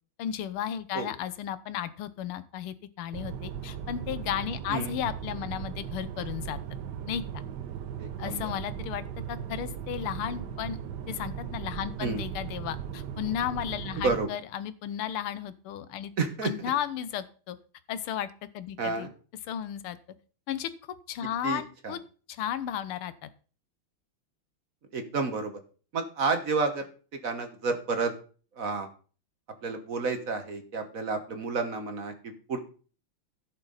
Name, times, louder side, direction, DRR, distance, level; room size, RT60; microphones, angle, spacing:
voice 1, 0.2-6.6 7.1-7.2 8.2-10.8 11.1-16.1 16.4-17.6 17.9-19.1 19.4-20.0 20.5-20.7 21.1-22.0 22.3-23.3, left 10 dB, 80° left, 14 dB, 1.7 m, -34 dB
sound 1, 3.1-14.3, right 8 dB, 65° right, 1.2 m, -38 dB
voice 2, 8.0-8.4 12.0-12.2 14.0-14.3 16.2-16.5 18.8-19.1 21.4-21.9 24.9-25.5 25.9-26.8 27.2-28.1 28.6-28.9 29.6-32.6, right 4 dB, 45° right, 7 dB, 1.4 m, -30 dB
15.5 x 6.6 x 4.0 m, 0.39 s
omnidirectional pair, 2.4 m